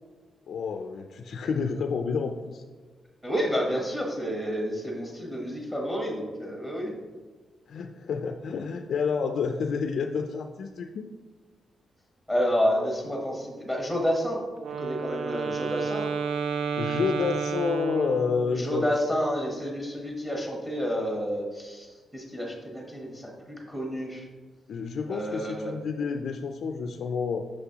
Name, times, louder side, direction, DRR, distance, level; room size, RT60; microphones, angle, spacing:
voice 1, 0.5-2.6 7.7-11.1 16.8-18.9 24.7-27.5, left 5 dB, 65° left, 5 dB, 0.3 m, -29 dB
voice 2, 3.2-7.0 12.3-14.4 14.8-16.1 18.5-24.3 25.1-25.7, equal, 10° right, -1 dB, 1.0 m, -29 dB
Wind instrument woodwind instrument, 14.6-18.7, right 5 dB, 80° right, 0.4 m, -31 dB
6.0 x 5.9 x 2.8 m, 1.4 s
wide cardioid pair, 150°, 0 cm